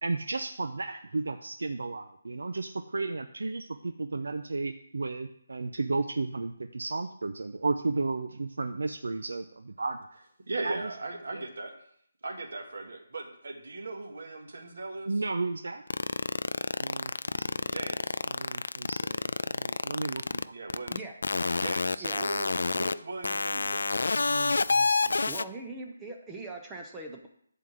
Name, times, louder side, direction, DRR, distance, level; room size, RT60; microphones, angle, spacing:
voice 1, 0.0-10.1 10.6-10.9 11.3-11.4 15.1-15.8 16.8-17.7 18.3-20.5 22.0-22.3 24.1-25.3, right 3 dB, 85° right, 7 dB, 0.7 m, -34 dB
voice 2, 10.5-11.7 12.2-15.1 17.7-18.2 20.5-20.9 21.6-23.9, right 2 dB, 50° right, 3 dB, 1.8 m, -38 dB
sound 1, 15.9-20.4 20.7-21.0 21.2-22.9 23.2-25.4, left 3 dB, 70° left, 0.4 m, -27 dB
voice 3, 25.3-27.3, right 2 dB, 5° right, 1 dB, 0.5 m, -41 dB
11.5 x 3.9 x 7.6 m, 0.68 s
hypercardioid pair, 180°, 0 cm